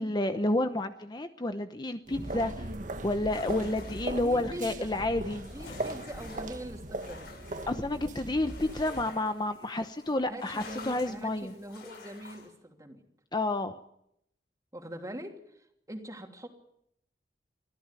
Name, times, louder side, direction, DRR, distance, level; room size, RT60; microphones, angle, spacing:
voice 1, 0.0-2.7 3.0-5.5 7.7-11.5 13.3-13.8, left 2 dB, 25° left, 9 dB, 0.9 m, -30 dB
sound 1, 2.1-12.5, left 3 dB, 60° left, 7.4 m, -50 dB
sound 2, 2.1-9.1, right 2 dB, 45° right, 1.4 m, -39 dB
voice 2, 4.2-4.9 5.5-7.3 10.3-13.0 14.7-16.5, equal, 20° right, 4 dB, 2.9 m, -43 dB
25.0 x 15.0 x 9.8 m, 0.77 s
head